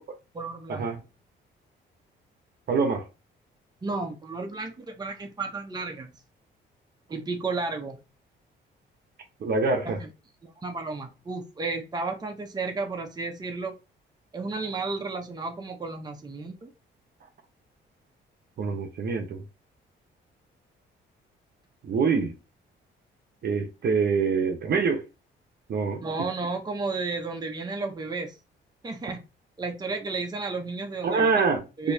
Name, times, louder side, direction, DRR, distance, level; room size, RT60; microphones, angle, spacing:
voice 1, 0.3-0.9 3.8-6.1 7.1-8.0 9.8-10.0 10.4-13.8 14.3-16.7 26.0-28.4 28.8-29.2 29.6-31.3 31.8-31.9, right 3 dB, 20° right, 0.8 m, -33 dB
voice 2, 2.7-3.1 9.4-10.0 18.6-19.4 21.8-22.3 23.4-25.0 25.7-26.0 31.0-31.9, right 5 dB, 55° right, 0.8 m, -25 dB
4.3 x 2.9 x 2.7 m
cardioid pair, 90°, 20 cm